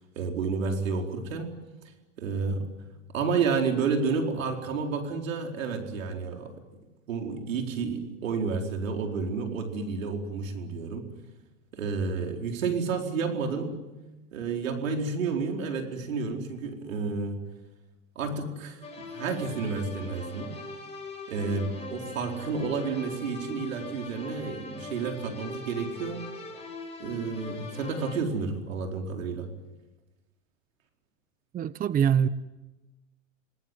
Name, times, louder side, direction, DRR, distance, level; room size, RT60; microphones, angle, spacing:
voice 1, 0.2-1.5 2.2-2.7 3.1-6.6 7.1-11.1 11.7-13.8 14.3-17.4 18.1-20.6 21.3-26.2 27.0-29.5, right 4 dB, 85° right, 4.7 m, -30 dB
sound 1, 18.8-28.2, left 2 dB, 15° left, 7.0 m, -41 dB
voice 2, 31.5-32.3, right 8 dB, 20° right, 0.8 m, -23 dB
28.5 x 20.0 x 9.5 m
hypercardioid pair, 110°, 39 cm